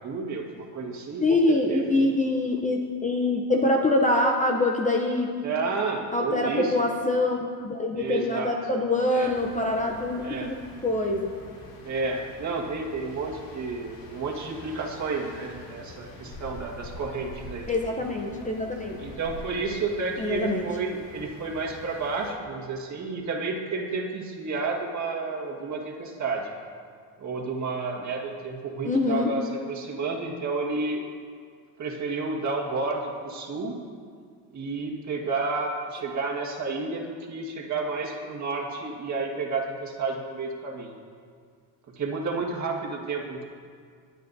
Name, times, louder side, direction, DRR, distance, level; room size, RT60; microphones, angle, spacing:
voice 1, 0.0-2.0 5.4-6.7 7.9-8.5 9.1-9.3 10.2-10.5 11.8-17.6 19.0-26.5 27.2-31.0 31.8-33.8 34.5-40.9 42.0-43.4, right 3 dB, 35° right, -1 dB, 1.7 m, -31 dB
voice 2, 1.2-5.3 6.1-11.3 17.7-19.0 20.2-20.7 28.8-29.3, left 2 dB, 15° left, 1 dB, 0.7 m, -25 dB
sound 1, 9.2-22.3, left 2 dB, 70° left, 3.2 m, -45 dB
19.5 x 9.0 x 2.7 m, 2.1 s
cardioid pair, 120°, 46 cm